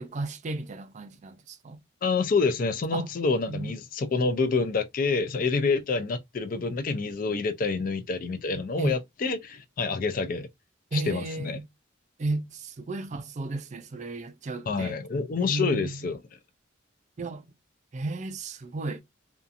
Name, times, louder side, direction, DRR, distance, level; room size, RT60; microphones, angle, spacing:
voice 1, 0.0-1.8 2.9-3.1 3.5-3.7 8.8-9.0 10.9-11.7 12.2-15.0 15.4-16.1 17.2-17.4 17.9-19.0, right 3 dB, 35° right, 0.4 m, -34 dB
voice 2, 2.0-10.5 10.9-11.6 14.7-16.2, left 4 dB, 45° left, 0.3 m, -27 dB
2.7 x 2.3 x 2.4 m
head